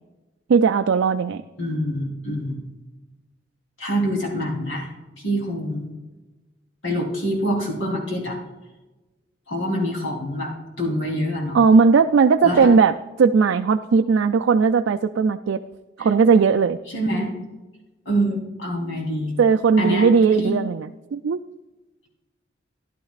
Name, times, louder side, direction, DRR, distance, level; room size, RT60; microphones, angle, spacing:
voice 1, 0.5-1.4 11.5-15.6 16.0-16.8 19.4-20.9 21.1-21.4, right 5 dB, 80° right, 7 dB, 0.4 m, -17 dB
voice 2, 1.6-2.7 3.8-4.9 5.2-5.9 6.8-8.4 9.5-10.5 10.8-11.6 12.4-12.7 16.0-16.1 16.9-17.4 18.1-19.3 19.8-20.1 20.4-20.5, equal, 85° left, -1 dB, 3.5 m, -25 dB
14.5 x 11.0 x 2.4 m, 1.2 s
head